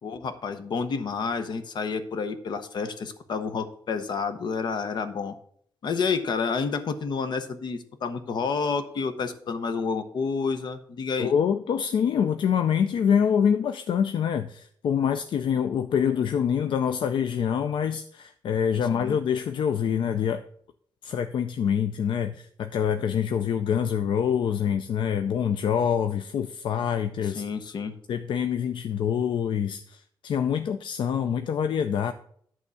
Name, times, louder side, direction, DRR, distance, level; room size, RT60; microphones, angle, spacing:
voice 1, 0.0-5.3 5.8-11.3 18.9-19.2 27.3-27.9, left 5 dB, 65° left, 10 dB, 0.9 m, -29 dB
voice 2, 11.2-20.4 21.0-27.4 28.1-32.1, left 8 dB, 80° left, 9 dB, 0.4 m, -25 dB
11.0 x 3.6 x 6.9 m, 0.62 s
wide cardioid pair, 150°, 8 cm